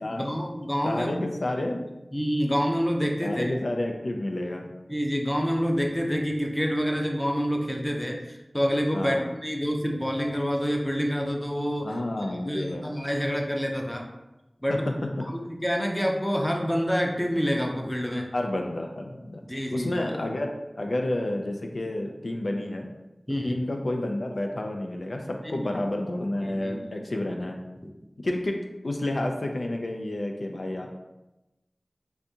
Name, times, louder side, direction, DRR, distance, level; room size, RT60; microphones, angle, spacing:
voice 1, 0.1-1.1 2.1-3.5 4.9-11.9 12.4-14.0 14.6-14.8 15.3-18.3 19.5-20.2 23.3-23.6 25.4-25.7 26.5-26.9, equal, 10° left, 1 dB, 0.5 m, -27 dB
voice 2, 0.8-1.8 3.2-4.7 8.9-9.3 11.8-12.9 14.7-14.8 18.3-19.4 19.7-20.5 20.8-22.9 23.4-27.6 28.2-28.6 28.8-30.9, left 1 dB, 80° left, 2 dB, 0.3 m, -30 dB
3.4 x 2.6 x 2.7 m, 0.99 s
wide cardioid pair, 55°, 0 cm